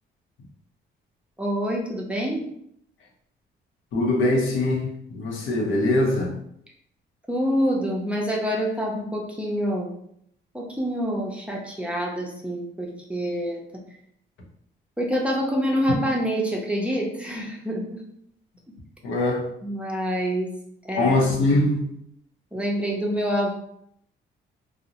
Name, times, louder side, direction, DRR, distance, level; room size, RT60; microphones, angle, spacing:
voice 1, 1.4-2.4 7.3-10.0 10.5-13.6 15.0-18.0 19.6-20.5 20.8-21.3 22.5-23.5, equal, 5° right, -1 dB, 0.5 m, -26 dB
voice 2, 3.9-6.3 19.0-19.5 21.0-21.9, left 2 dB, 80° left, 0 dB, 0.7 m, -22 dB
2.5 x 2.0 x 2.8 m, 0.72 s
cardioid pair, 90°, 20 cm